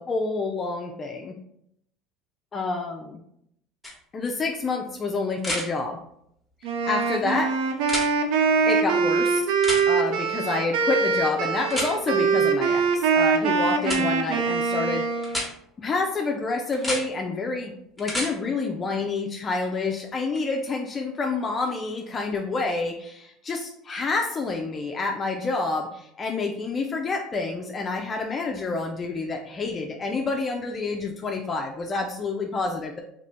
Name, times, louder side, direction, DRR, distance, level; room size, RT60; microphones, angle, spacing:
voice 1, 0.0-1.4 2.5-3.2 4.1-6.0 6.8-7.6 8.7-9.5 9.9-15.5 15.8-33.0, left 3 dB, 30° left, 2 dB, 0.4 m, -28 dB
sound 1, 3.8-3.9 5.4-5.7 7.8-8.1 9.6-9.8 11.7-11.9 13.8-14.0 15.2-15.5 16.7-17.0 18.0-18.3 20.4-20.5, left 1 dB, ahead, 1.0 m, -29 dB
Wind instrument woodwind instrument, 6.6-15.4, right 5 dB, 75° right, 0.4 m, -23 dB
2.9 x 2.6 x 3.3 m, 0.72 s
supercardioid pair, 100°, 0 cm